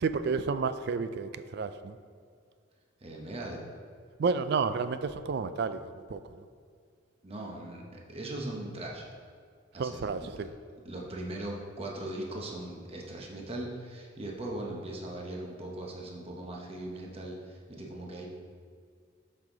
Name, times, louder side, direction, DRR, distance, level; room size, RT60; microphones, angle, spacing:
voice 1, 0.0-2.0 4.2-6.2 9.8-10.5, right 5 dB, 60° right, 12 dB, 0.4 m, -31 dB
voice 2, 3.0-3.6 7.2-9.1 9.7-10.3 10.8-18.3, right 1 dB, 30° right, -2 dB, 1.1 m, -39 dB
7.5 x 5.6 x 3.9 m, 2.1 s
head